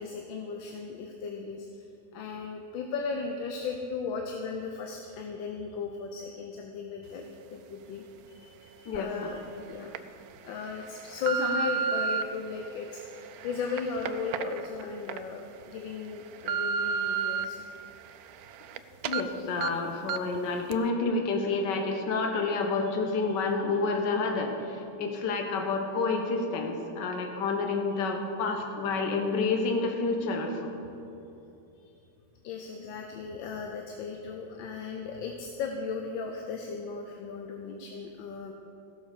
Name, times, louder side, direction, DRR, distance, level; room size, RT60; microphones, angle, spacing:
voice 1, 0.0-1.8 2.1-10.0 10.4-17.6 18.7-18.8 23.0-23.1 27.9-28.1 31.7-32.0 32.4-38.5, left 4 dB, 85° left, 2 dB, 1.5 m, -36 dB
sound 1, 8.9-9.0 9.7-10.0 10.6-12.2 12.9-15.2 15.6-15.7 16.1-17.4 17.9-18.8 19.0-19.2 19.6-19.7 20.1-20.4 20.7-20.8, right 6 dB, 75° right, 0.8 m, -32 dB
voice 2, 19.0-30.7, left 3 dB, 70° left, 3 dB, 1.6 m, -29 dB
15.5 x 6.5 x 6.6 m, 2.8 s
omnidirectional pair, 2.0 m